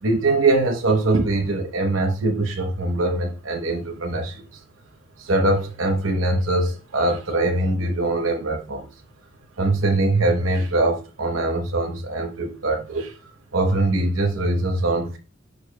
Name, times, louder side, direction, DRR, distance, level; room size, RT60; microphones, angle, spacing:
voice 1, 0.0-4.6 5.2-8.9 9.6-13.2 13.5-15.2, right 2 dB, 75° right, 0.9 m, -22 dB
6.6 x 6.4 x 2.2 m
head